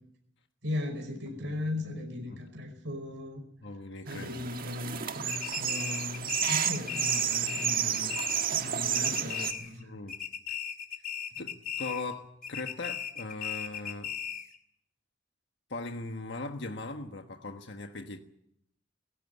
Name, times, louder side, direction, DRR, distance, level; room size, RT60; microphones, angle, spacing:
voice 1, 0.6-3.4 4.0-8.1 8.4-9.9, left 2 dB, 75° right, 3 dB, 5.3 m, -37 dB
Keyboard (musical), 1.3-4.8, right 2 dB, 25° right, 5.1 m, -60 dB
voice 2, 3.6-4.4 9.8-10.2 11.4-14.1 15.7-18.2, left 3 dB, 70° left, 5 dB, 1.4 m, -39 dB
sound 1, 4.1-9.5, right 9 dB, 50° right, 1.6 m, -31 dB
sound 2, 5.3-8.7 8.9-9.8 10.1-12.1 12.4-14.6, left 8 dB, 50° left, 2.4 m, -37 dB
19.0 x 16.5 x 9.7 m, 0.74 s
head